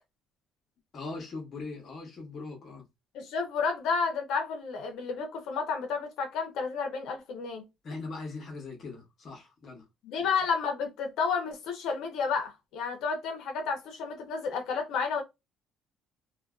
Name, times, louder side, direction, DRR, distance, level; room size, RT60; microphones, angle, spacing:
voice 1, 0.9-2.8 7.8-9.8 10.1-10.3, left 3 dB, 40° left, 0.9 m, -40 dB
voice 2, 3.1-7.6 10.0-15.2, left 5 dB, 70° left, 0.6 m, -31 dB
2.5 x 2.2 x 2.3 m
cardioid pair, 170°, 0 cm